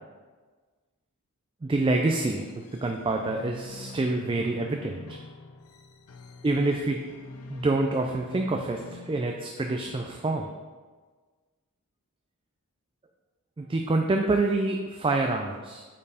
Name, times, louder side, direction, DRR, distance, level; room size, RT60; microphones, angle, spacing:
voice 1, 1.6-5.0 6.4-7.0 7.5-10.5 13.6-15.8, right 2 dB, 20° right, 3 dB, 0.3 m, -27 dB
sound 1, 2.1-9.7, left 2 dB, 75° left, 0.5 m, -45 dB
8.4 x 4.6 x 3.4 m, 1.4 s
head